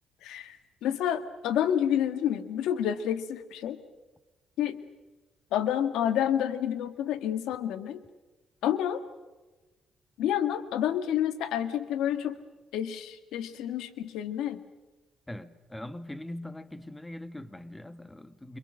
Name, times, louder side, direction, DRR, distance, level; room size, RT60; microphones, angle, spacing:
voice 1, 0.2-3.8 4.6-4.8 5.5-8.0 8.6-9.0 10.2-12.4 12.7-14.6, left 10 dB, 90° left, 1.7 m, -29 dB
voice 2, 15.3-18.6, left 1 dB, 10° left, 1.5 m, -41 dB
29.0 x 26.0 x 6.5 m
cardioid pair, 90°, 0 cm